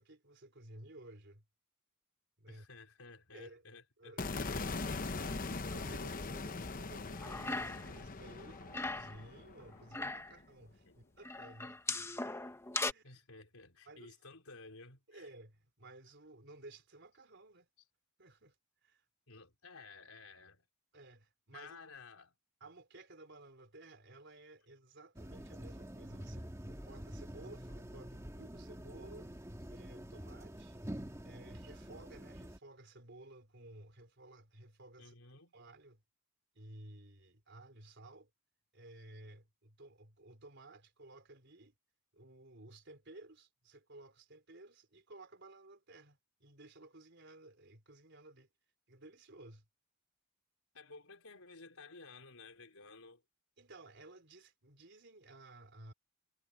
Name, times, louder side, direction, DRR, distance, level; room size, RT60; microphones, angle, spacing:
voice 1, 0.0-1.4 2.4-2.7 3.3-3.6 4.0-4.7 5.6-11.8 12.1-13.2 13.9-14.2 15.1-17.7 18.2-18.6 18.8-19.0 20.9-21.8 22.6-29.3 29.7-30.8 31.2-35.2 35.5-36.0 36.5-38.3 38.7-41.7 42.1-48.5 48.9-49.7 53.6-55.9, right 2 dB, 55° right, 4.2 m, -55 dB
voice 2, 2.5-5.5 10.9-11.0 12.9-15.3 19.3-20.6 21.5-22.3 35.0-35.5 50.7-53.2, left 3 dB, 75° left, 3.9 m, -54 dB
sound 1, 4.2-10.4, left 3 dB, 40° left, 0.9 m, -41 dB
sound 2, 7.1-8.0 8.3-9.2 9.7-10.4 11.2-12.9, left 3 dB, 10° left, 1.0 m, -39 dB
sound 3, 25.2-32.6, equal, 15° right, 1.7 m, -47 dB
head